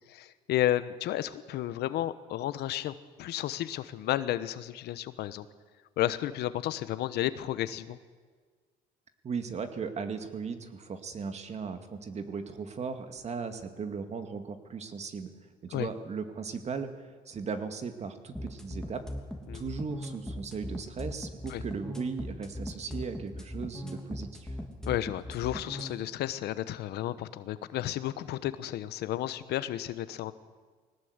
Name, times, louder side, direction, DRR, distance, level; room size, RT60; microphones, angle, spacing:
voice 1, 0.1-5.5 6.0-8.0 15.7-15.9 19.5-19.6 21.5-21.6 24.9-30.3, left 13 dB, 75° left, 14 dB, 1.1 m, -32 dB
voice 2, 9.2-15.3 15.6-19.0 19.5-24.6, right 5 dB, 40° right, 8 dB, 2.1 m, -37 dB
sound 1, 18.3-25.9, left 1 dB, 5° left, 3.1 m, -38 dB
21.0 x 18.5 x 8.1 m, 1.5 s
cardioid pair, 110°, 17 cm